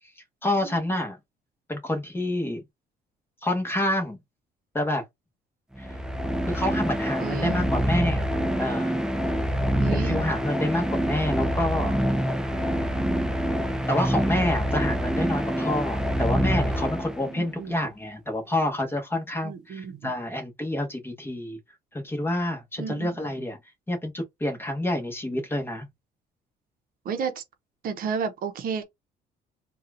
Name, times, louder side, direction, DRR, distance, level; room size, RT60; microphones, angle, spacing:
voice 1, 0.4-1.2 1.7-2.6 3.4-4.2 4.7-5.0 5.8-5.9 6.5-8.3 8.6-9.0 9.9-12.0 13.9-21.6 21.9-23.6 23.9-25.9, left 1 dB, 15° left, 1.2 m, -28 dB
sound 1, 5.7-17.5, equal, 5° right, 0.5 m, -26 dB
voice 2, 7.2-7.6 9.8-10.3 17.3-17.7 19.4-20.1 22.8-23.1 27.0-27.4 27.8-28.8, right 6 dB, 60° right, 0.8 m, -32 dB
4.1 x 2.4 x 2.6 m
cardioid pair, 110°, 17 cm